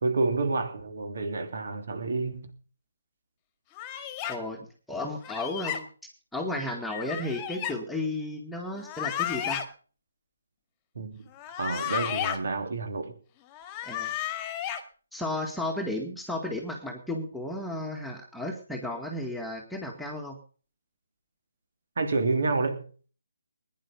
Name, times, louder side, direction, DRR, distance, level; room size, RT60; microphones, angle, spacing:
voice 1, 0.0-2.5 11.0-11.2 11.6-13.2 22.0-22.9, right 3 dB, 55° right, 3.4 m, -29 dB
sound 1, 3.8-4.4 5.2-5.8 6.9-7.7 8.8-9.6 11.3-12.4 13.5-14.8, left 11 dB, 20° left, 1.9 m, -33 dB
voice 2, 4.3-5.9 6.3-9.6 13.8-14.1 15.1-20.4, left 1 dB, ahead, 2.0 m, -33 dB
20.5 x 10.5 x 5.4 m
figure-of-eight pair, 145°, 0 cm